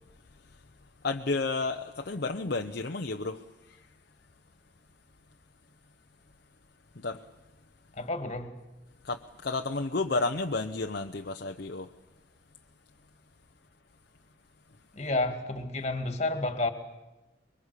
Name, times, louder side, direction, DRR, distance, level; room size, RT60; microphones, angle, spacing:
voice 1, 1.0-3.9 6.9-7.2 9.0-11.9, left 3 dB, 55° left, 0.8 m, -32 dB
voice 2, 7.9-8.5 14.9-16.7, left 2 dB, 35° left, 2.1 m, -30 dB
25.0 x 22.0 x 8.4 m
head